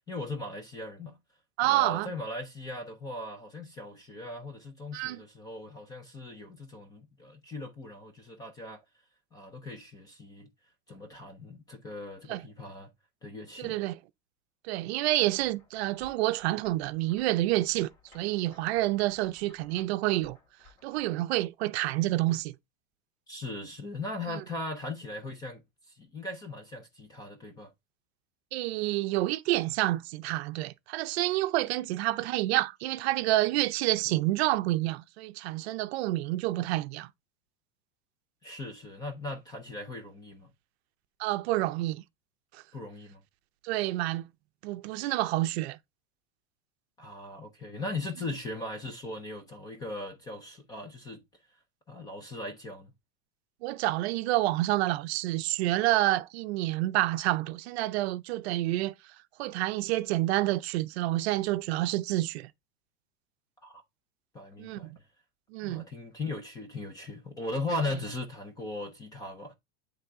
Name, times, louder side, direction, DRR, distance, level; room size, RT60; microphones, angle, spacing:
voice 1, 0.1-1.2 1.6-8.8 9.3-10.5 10.9-12.9 13.2-13.8 23.3-27.7 34.1-34.2 38.4-40.5 42.7-43.2 47.0-51.2 51.9-52.9 63.6-63.8 64.3-64.9 65.6-69.5, left 2 dB, 10° left, 0.4 m, -38 dB
voice 2, 1.6-2.1 4.9-5.2 12.3-12.4 13.6-14.0 14.6-17.9 18.1-20.4 20.8-22.5 24.3-24.4 28.5-37.1 41.2-42.0 42.5-42.6 43.6-44.3 44.6-45.8 53.6-58.9 59.4-62.5 64.6-65.0 65.5-65.9, right 17 dB, 55° right, 0.5 m, -28 dB
sound 1, 15.3-21.0, left 3 dB, 40° left, 2.7 m, -59 dB
8.9 x 3.4 x 3.5 m
supercardioid pair, 160°, 39 cm